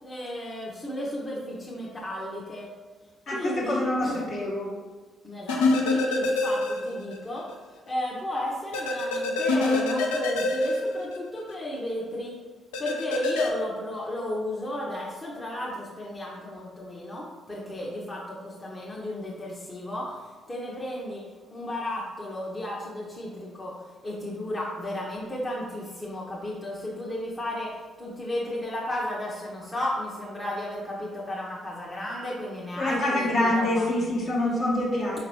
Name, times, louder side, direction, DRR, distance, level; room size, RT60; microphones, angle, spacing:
voice 1, 0.0-2.7 3.3-4.2 5.2-7.5 7.9-12.3 12.8-21.2 21.5-23.7 24.0-33.9, left 1 dB, 30° left, -5 dB, 0.9 m, -34 dB
voice 2, 3.3-4.7 32.8-35.2, left 1 dB, 55° left, -5 dB, 1.2 m, -26 dB
sound 1, 5.5-7.2 7.5-7.6 8.7-11.5 12.7-13.5, left 2 dB, 80° left, 0.4 m, -25 dB
5.1 x 2.9 x 3.1 m, 1.4 s
hypercardioid pair, 45°, 0 cm